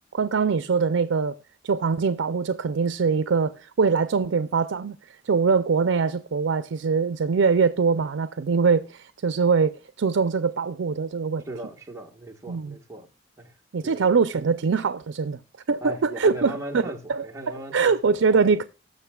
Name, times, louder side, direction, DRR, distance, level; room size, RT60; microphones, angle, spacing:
voice 1, 0.1-1.3 1.6-5.0 5.2-11.4 12.5-12.8 13.7-15.4 15.7-18.6, right 5 dB, 85° right, 0.5 m, -23 dB
voice 2, 11.4-13.1 13.4-13.5 13.8-14.2 15.8-17.9 18.3-18.4, right 1 dB, 15° right, 1.4 m, -38 dB
19.5 x 6.6 x 2.3 m
head